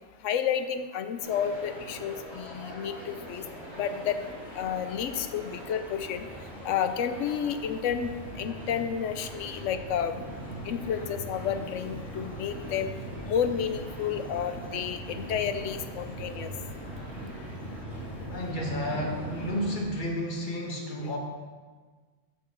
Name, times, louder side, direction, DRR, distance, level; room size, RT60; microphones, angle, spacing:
voice 1, 0.2-3.4 3.8-4.2 4.6-6.3 6.6-10.1 10.7-12.9 13.3-16.5, left 8 dB, 85° left, 10 dB, 0.9 m, -31 dB
sound 1, 1.2-19.8, right 1 dB, ahead, 2.4 m, -40 dB
voice 2, 18.3-21.2, equal, 40° left, 0 dB, 1.6 m, -31 dB
6.0 x 5.9 x 7.0 m, 1.4 s
omnidirectional pair, 1.2 m